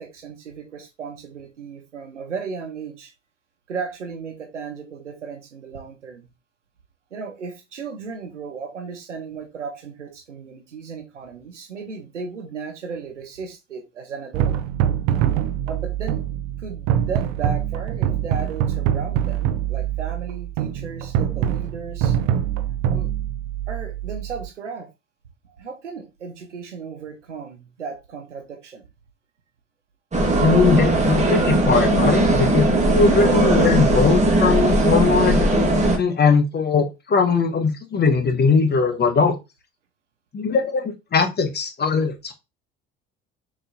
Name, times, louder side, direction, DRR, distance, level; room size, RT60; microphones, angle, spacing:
voice 1, 0.0-3.1 3.7-6.3 7.1-14.5 15.7-16.2 16.6-22.2 22.9-23.1 23.7-24.9 25.4-28.8, right 5 dB, 85° right, 1.1 m, -35 dB
sound 1, 14.3-24.5, right 10 dB, 55° right, 0.6 m, -24 dB
sound 2, 30.1-36.0, right 1 dB, 20° right, 1.5 m, -18 dB
voice 2, 30.4-32.7 32.9-39.4 40.3-42.3, left 5 dB, 30° left, 1.1 m, -20 dB
6.5 x 3.1 x 2.6 m
figure-of-eight pair, 60°, 35 cm